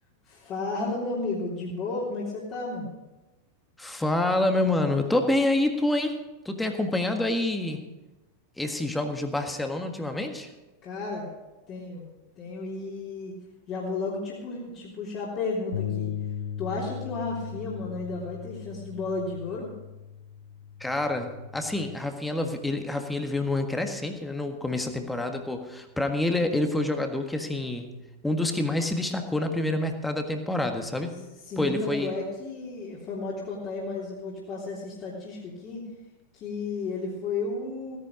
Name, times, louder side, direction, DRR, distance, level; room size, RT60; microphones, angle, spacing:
voice 1, 0.2-2.9 10.8-11.3 11.7-12.1 12.4-13.3 13.7-16.1 16.6-19.7 31.4-35.9 36.3-38.0, left 3 dB, 35° left, -7 dB, 3.3 m, -33 dB
voice 2, 3.8-6.2 6.4-7.8 8.6-10.5 20.8-28.0 28.2-31.1 31.6-32.1, left 2 dB, 5° left, 5 dB, 1.6 m, -27 dB
Bass guitar, 15.7-22.0, left 9 dB, 70° left, 1.0 m, -37 dB
17.0 x 10.5 x 5.1 m, 1.1 s
figure-of-eight pair, 90°, 0 cm